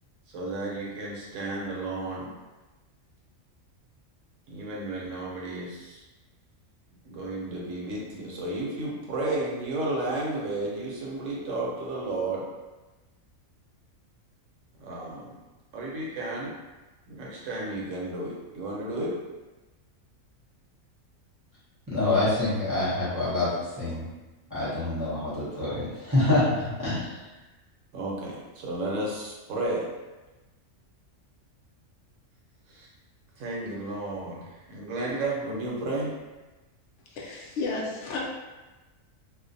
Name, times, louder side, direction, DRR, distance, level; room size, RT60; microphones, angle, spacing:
voice 1, 0.3-2.3 4.5-6.0 7.0-12.4 14.8-15.3 15.7-16.5 17.1-19.1 27.9-29.9 32.7-32.9 33.4-36.1, right 2 dB, 75° right, -4 dB, 1.0 m, -32 dB
voice 2, 21.9-24.1 24.5-27.2, left 2 dB, 20° right, -12 dB, 0.6 m, -26 dB
voice 3, 37.1-38.2, left 3 dB, 65° left, -3 dB, 0.8 m, -32 dB
2.5 x 2.1 x 2.5 m, 1.1 s
omnidirectional pair, 1.4 m